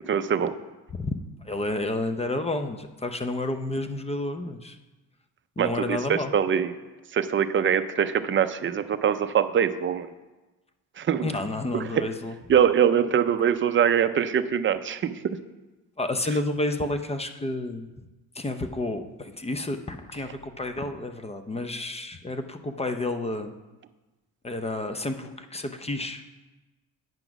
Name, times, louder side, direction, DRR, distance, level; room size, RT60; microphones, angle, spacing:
voice 1, 0.1-0.5 5.6-6.7 7.1-10.1 11.0-11.3 11.7-12.0 12.5-15.2, right 8 dB, 35° right, 10 dB, 0.5 m, -23 dB
voice 2, 1.4-4.8 5.6-6.3 11.2-12.4 16.0-17.9 18.3-23.5 24.4-26.3, left 2 dB, 15° left, 8 dB, 0.5 m, -30 dB
9.0 x 5.9 x 5.9 m, 1.2 s
cardioid pair, 115°, 36 cm